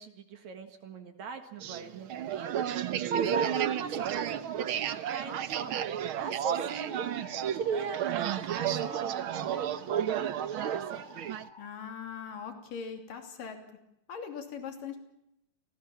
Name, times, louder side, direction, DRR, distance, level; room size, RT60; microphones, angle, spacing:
voice 1, 0.0-2.5 3.1-5.8 6.1-7.0 7.4-11.1, right 5 dB, 60° right, 7 dB, 3.0 m, -38 dB
sound 1, 1.6-11.5, right 10 dB, 80° right, 1.2 m, -32 dB
sound 2, 6.6-11.7, left 3 dB, 55° left, 0.5 m, -52 dB
voice 2, 11.6-13.6 14.1-15.0, left 6 dB, 90° left, 6 dB, 4.7 m, -40 dB
28.5 x 19.5 x 7.2 m, 0.84 s
omnidirectional pair, 3.7 m